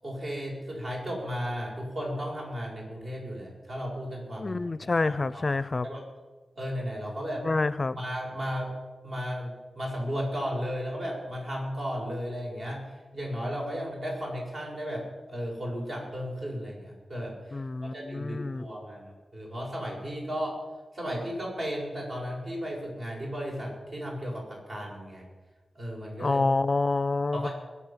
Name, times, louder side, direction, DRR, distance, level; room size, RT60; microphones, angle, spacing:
voice 1, 0.0-5.6 5.8-6.0 6.6-7.4 7.9-8.7 9.0-12.8 13.1-17.6 17.9-20.6 20.9-25.2 25.7-26.4 27.3-27.5, equal, 55° right, -2 dB, 7.2 m, -35 dB
voice 2, 4.4-5.9 7.4-8.0 17.5-18.7 26.2-27.5, left 3 dB, 40° left, 16 dB, 0.5 m, -27 dB
21.5 x 8.4 x 7.6 m, 1.2 s
wide cardioid pair, 90°, 0 cm